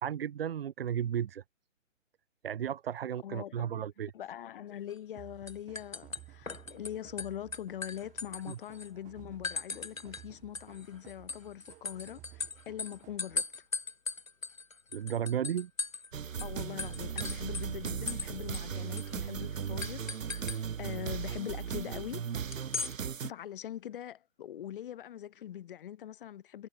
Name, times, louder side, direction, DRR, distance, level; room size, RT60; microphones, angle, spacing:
voice 1, 0.0-1.4 2.4-4.1 8.5-8.6 14.9-15.7, right 9 dB, 45° right, 2.3 m, -34 dB
voice 2, 3.2-3.7 4.1-13.4 16.4-22.2 23.2-26.7, left 11 dB, 40° left, 5.3 m, -42 dB
sound 1, 4.9-5.2 5.5-6.9 7.2-8.9 9.4-10.2 10.5-16.1 16.4-16.5 16.8-18.3 18.5-18.6 19.0-19.1 19.8-20.6 22.5-22.9, left 4 dB, 85° left, 2.5 m, -38 dB
sound 2, 5.2-13.6, right 17 dB, 20° right, 4.8 m, -55 dB
sound 3, 16.1-23.3, right 7 dB, 80° right, 0.8 m, -37 dB
figure-of-eight pair, 140°, 39 cm